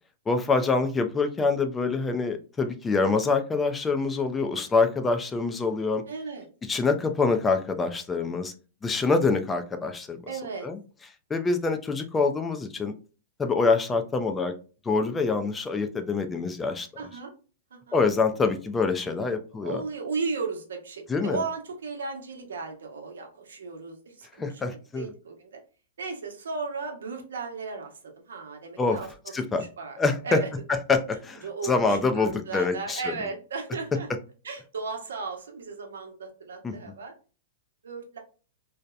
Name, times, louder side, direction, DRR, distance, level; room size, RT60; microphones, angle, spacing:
voice 1, 0.3-6.0 6.7-8.5 8.8-10.2 10.6-10.8 11.3-12.9 13.4-14.5 14.9-16.9 17.9-19.8 21.1-21.4 24.4-25.1 28.8-29.0 29.3-29.6 30.0-30.4 30.7-33.1 36.6-36.7, left 4 dB, 10° left, 7 dB, 0.3 m, -25 dB
voice 2, 6.1-6.5 10.3-10.7 17.0-17.3 17.7-18.0 19.3-25.6 26.0-27.9 28.3-29.1 29.6-29.9 30.2-30.5 31.4-34.1 34.4-37.1 37.8-38.2, right 4 dB, 90° right, 3 dB, 0.8 m, -35 dB
2.7 x 2.0 x 2.3 m, 0.36 s
hypercardioid pair, 150°, 0 cm